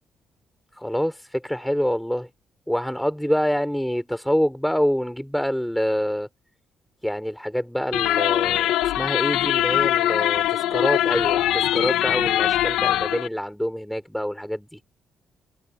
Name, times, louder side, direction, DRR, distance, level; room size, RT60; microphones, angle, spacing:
voice 1, 0.8-2.3 2.7-6.3 7.0-14.8, equal, ahead, 3.9 m, -26 dB
sound 1, 7.9-13.3, left 13 dB, 90° left, 1.3 m, -22 dB
cardioid pair, 90°, 0 cm